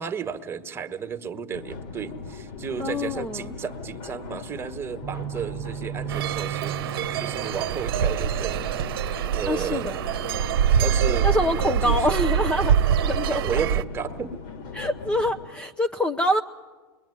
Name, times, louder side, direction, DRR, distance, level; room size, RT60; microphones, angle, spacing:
voice 1, 0.0-8.7 9.3-9.9 10.8-12.0 13.3-14.4, right 7 dB, 20° right, 8 dB, 1.7 m, -33 dB
sound 1, 1.5-15.5, left 4 dB, 55° left, 2.6 m, -39 dB
voice 2, 2.8-3.5 9.5-10.0 11.2-12.7 13.0-13.7 14.7-16.4, left 1 dB, 10° left, 6 dB, 0.8 m, -25 dB
sound 2, 5.0-9.0, right 11 dB, 45° right, 1.1 m, -36 dB
sound 3, 6.1-13.8, right 8 dB, 70° right, 1.0 m, -24 dB
27.5 x 21.5 x 10.0 m, 1.4 s
hypercardioid pair, 120°, 13 cm